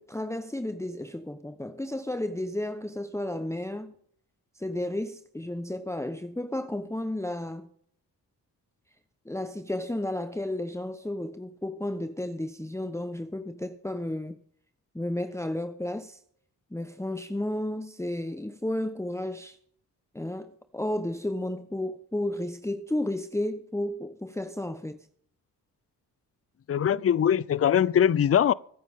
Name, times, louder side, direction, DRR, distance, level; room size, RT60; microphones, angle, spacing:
voice 1, 0.0-3.9 4.6-7.7 9.2-14.4 14.9-16.2 16.7-19.6 20.1-25.0, left 1 dB, 5° left, 1.0 m, -32 dB
voice 2, 26.7-28.5, left 9 dB, 35° left, 0.6 m, -22 dB
25.0 x 9.1 x 3.7 m
supercardioid pair, 45°, 42 cm